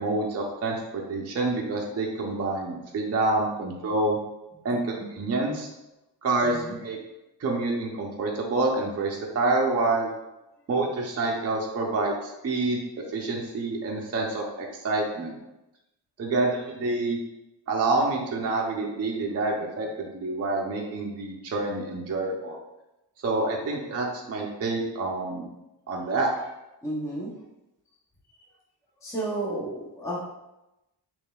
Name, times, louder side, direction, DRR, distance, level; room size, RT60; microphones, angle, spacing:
voice 1, 0.0-4.2 4.6-5.7 6.2-7.0 7.4-10.1 10.7-12.8 13.1-15.3 16.2-17.2 17.7-22.6 23.2-25.5 25.9-26.3, right 2 dB, 35° right, -1 dB, 0.5 m, -27 dB
voice 2, 6.4-6.8 26.8-27.3 29.0-30.2, right 1 dB, 5° left, -6 dB, 0.6 m, -32 dB
5.0 x 3.1 x 2.3 m, 0.94 s
wide cardioid pair, 175°, 44 cm